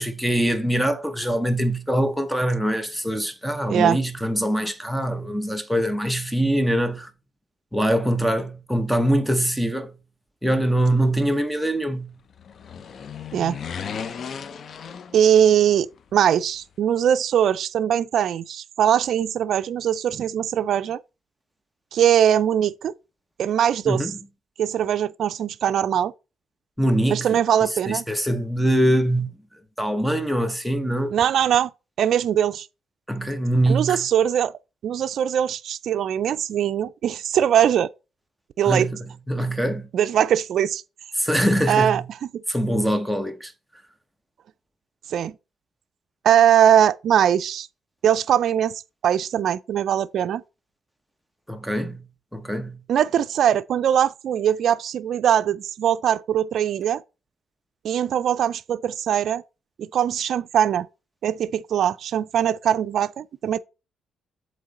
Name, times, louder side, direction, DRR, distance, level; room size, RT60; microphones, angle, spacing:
voice 1, 0.0-7.1 7.7-9.9 10.4-12.1 23.9-24.1 26.8-27.3 27.9-29.3 29.8-31.1 33.1-34.1 38.6-39.9 41.2-42.1 42.5-43.5 51.5-52.1 52.3-52.8, right 1 dB, ahead, 1.0 m, -23 dB
voice 2, 3.7-4.0 13.3-13.6 15.1-21.0 21.9-22.9 23.4-24.1 24.6-26.1 27.1-28.0 31.1-31.7 32.0-32.7 33.7-34.5 34.8-37.9 38.6-38.9 39.9-40.8 41.7-42.0 42.3-42.4 45.1-45.3 46.2-47.7 48.0-48.7 49.0-50.4 52.9-57.0 57.8-59.4 59.8-60.9 61.2-63.6, right 9 dB, 65° right, 0.4 m, -21 dB
sound 1, 12.3-15.7 16.0-16.1, left 7 dB, 55° left, 0.6 m, -35 dB
7.6 x 3.2 x 4.1 m
cardioid pair, 90°, 0 cm